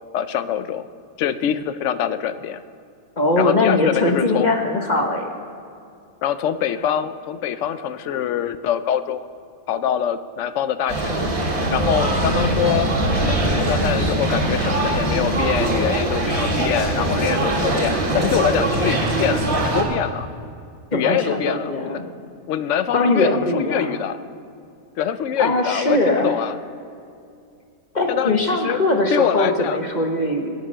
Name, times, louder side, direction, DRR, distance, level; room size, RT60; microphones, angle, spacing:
voice 1, 0.1-0.9 1.2-2.6 3.4-4.5 6.2-9.3 9.7-11.3 11.7-20.3 20.9-22.0 22.5-24.2 25.0-26.6 28.1-28.8 29.1-29.8, left 9 dB, 65° left, 12 dB, 0.9 m, -24 dB
voice 2, 3.2-5.3 12.2-12.6 20.9-22.1 22.9-24.0 25.4-26.3 27.9-30.5, left 2 dB, 35° left, 3 dB, 1.2 m, -21 dB
sound 1, 10.9-19.8, right 1 dB, 80° right, 2.5 m, -21 dB
22.5 x 8.3 x 5.6 m, 2.4 s
omnidirectional pair, 1.5 m